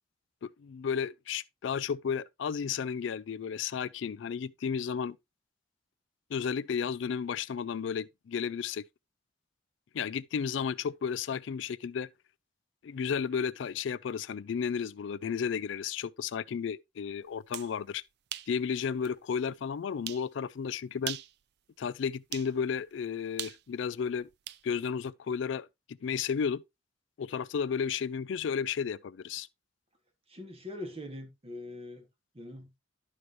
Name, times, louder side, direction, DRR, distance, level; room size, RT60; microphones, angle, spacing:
voice 1, 0.4-5.2 6.3-8.8 9.9-12.1 12.8-18.0 18.5-21.2 21.8-24.3 24.6-26.6 27.2-29.5, left 6 dB, 65° left, 0.4 m, -33 dB
sound 1, 17.3-17.7 18.3-18.5 19.0-19.1 20.1-20.3 21.0-21.4 22.3-22.5 23.4-24.6, right 13 dB, 55° right, 0.4 m, -39 dB
voice 2, 30.3-32.1 32.3-32.7, left 1 dB, 30° right, 1.5 m, -42 dB
12.0 x 5.5 x 3.0 m
head